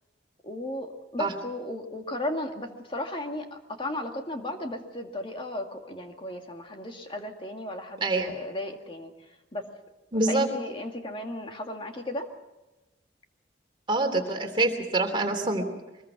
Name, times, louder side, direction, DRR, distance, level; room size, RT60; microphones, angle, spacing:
voice 1, 0.4-9.1 9.5-9.7 10.3-12.3, left 1 dB, 30° left, 3 dB, 2.1 m, -35 dB
voice 2, 10.1-10.5 13.9-15.6, right 2 dB, 30° right, 3 dB, 3.2 m, -25 dB
24.5 x 21.0 x 5.9 m, 1.0 s
head